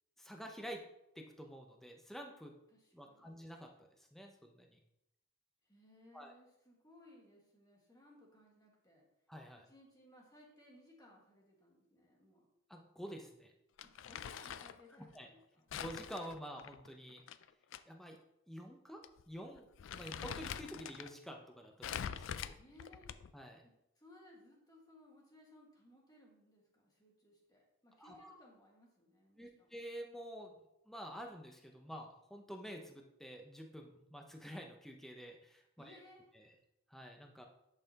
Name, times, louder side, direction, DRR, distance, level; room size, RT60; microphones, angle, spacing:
voice 1, 0.2-0.8 1.2-2.5 2.9-4.8 6.1-6.3 9.3-9.7 12.7-13.5 15.1-15.3 15.7-17.2 17.9-18.2 18.5-22.6 23.3-23.6 28.0-28.4 29.4-30.5 30.9-36.0 36.4-36.5 36.9-37.5, equal, ahead, 3 dB, 0.6 m, -49 dB
voice 2, 2.7-3.4 5.6-9.0 9.6-12.5 13.8-15.4 22.6-23.1 23.6-29.7 35.8-36.6, left 1 dB, 20° left, -2 dB, 1.7 m, -62 dB
Crumpling crinkling, 13.8-14.8 15.7-17.8 18.1-18.2 19.0-19.2 19.6-21.1 21.8-23.4, left 8 dB, 65° left, 0.3 m, -44 dB
10.5 x 5.6 x 2.9 m, 0.85 s
head